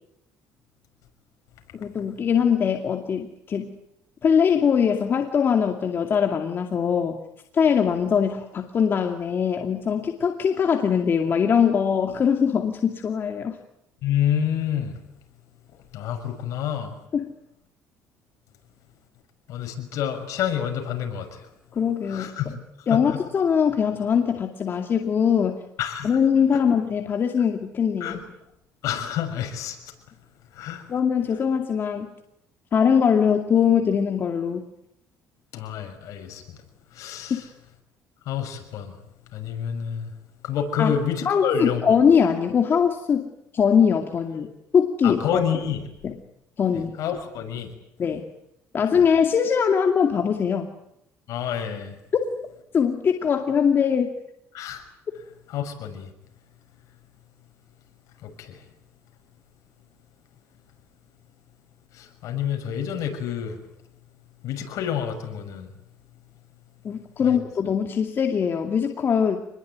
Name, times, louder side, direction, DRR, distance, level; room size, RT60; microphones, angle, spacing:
voice 1, 1.7-3.7 4.2-7.2 7.5-13.6 17.1-17.3 21.7-22.3 22.9-25.6 26.0-28.2 30.9-32.1 32.7-34.6 37.3-37.4 40.8-41.0 41.3-43.3 43.5-45.4 46.0-46.2 46.6-47.0 48.0-48.3 48.7-50.7 52.7-54.1 66.8-69.4, left 7 dB, 40° left, 4 dB, 2.4 m, -22 dB
voice 2, 14.0-15.0 15.9-17.0 19.5-21.4 22.1-22.5 22.9-23.2 25.8-26.2 26.5-26.6 28.0-28.2 28.8-29.8 30.5-30.8 35.5-36.4 36.9-37.5 38.2-39.0 39.3-40.1 40.4-41.8 45.0-45.9 46.7-47.7 49.0-49.1 51.3-52.0 54.5-54.8 55.5-56.1 58.2-58.6 61.9-63.6 64.4-65.7 67.2-67.4, left 9 dB, 70° left, 5 dB, 6.6 m, -28 dB
27.0 x 21.0 x 9.4 m, 0.79 s
cardioid pair, 135°, 6 cm